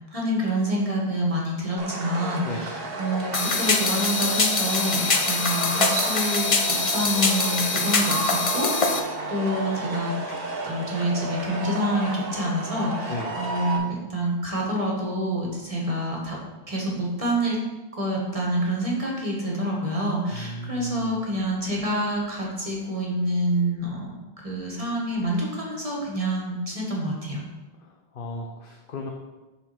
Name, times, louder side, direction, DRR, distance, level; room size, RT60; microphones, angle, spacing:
voice 1, 0.1-10.1 10.6-16.4 16.7-17.6 17.9-27.4, right 1 dB, 35° right, -3 dB, 1.7 m, -27 dB
sound 1, 1.8-13.8, right 2 dB, 65° right, 1.2 m, -32 dB
sound 2, 3.3-9.0, left 3 dB, 35° left, 0.7 m, -24 dB
voice 2, 20.3-21.1 28.1-29.1, left 2 dB, 60° left, 0 dB, 1.0 m, -34 dB
7.1 x 4.2 x 5.9 m, 1.1 s
omnidirectional pair, 1.1 m